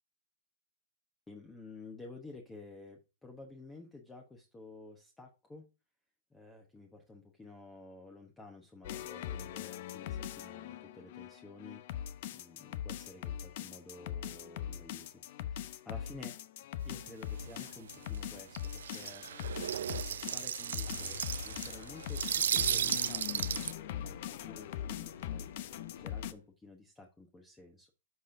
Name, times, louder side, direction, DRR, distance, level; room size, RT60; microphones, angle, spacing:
voice 1, 1.3-5.7 6.3-11.8 12.3-16.4 16.8-27.9, left 2 dB, 10° left, 2 dB, 1.0 m, -52 dB
sound 1, 8.8-26.3, left 10 dB, 55° left, 0.6 m, -41 dB
sound 2, 17.1-17.2 17.4-17.6 17.9-23.7, right 9 dB, 85° right, 0.3 m, -35 dB
sound 3, 20.8-26.4, left 6 dB, 85° left, 1.1 m, -50 dB
13.0 x 4.3 x 2.6 m, 0.30 s
hypercardioid pair, 150°, 0 cm